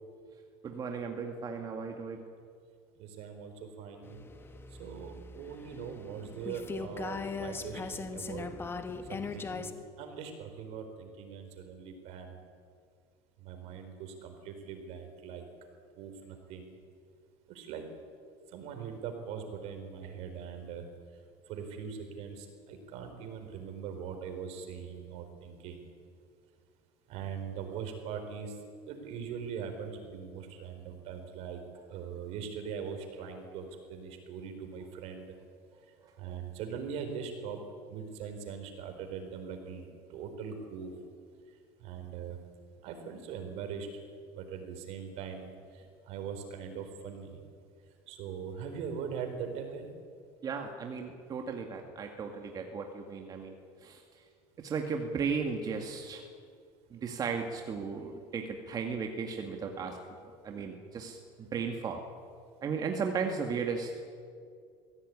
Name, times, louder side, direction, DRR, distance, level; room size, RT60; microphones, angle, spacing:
voice 1, 0.6-2.3 36.3-36.4 50.4-53.5 53.8-54.0 54.6-56.3 56.9-60.0 60.4-62.0 62.6-63.9, right 5 dB, 35° right, 3 dB, 2.1 m, -35 dB
voice 2, 3.0-4.2 4.8-8.5 9.1-12.4 13.4-15.4 16.0-16.7 17.5-17.8 18.5-20.8 21.5-25.8 27.1-28.5 28.9-31.6 31.9-35.3 36.2-37.6 37.9-39.9 40.1-40.9 41.8-42.4 42.8-43.9 44.4-45.5 46.1-47.4 48.1-49.9, right 7 dB, 65° right, 6 dB, 4.5 m, -41 dB
sound 1, 4.0-9.7, left 4 dB, 20° left, 1.5 m, -40 dB
22.5 x 16.5 x 9.8 m, 2.2 s
cardioid pair, 125°, 12 cm